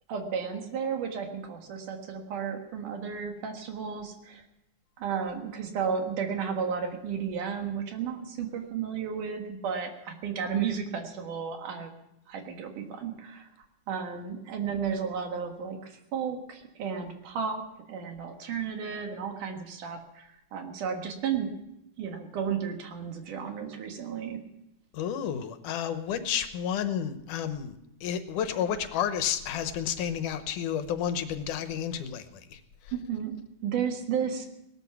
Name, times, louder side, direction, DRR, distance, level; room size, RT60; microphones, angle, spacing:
voice 1, 0.1-4.4 5.0-11.9 12.3-13.5 13.9-21.5 22.0-24.4 32.9-33.3 33.6-34.5, right 7 dB, 75° right, 4 dB, 3.2 m, -33 dB
voice 2, 24.9-27.8 28.0-32.6, left 8 dB, 80° left, 10 dB, 2.5 m, -31 dB
18.5 x 12.5 x 5.9 m, 0.87 s
omnidirectional pair, 3.6 m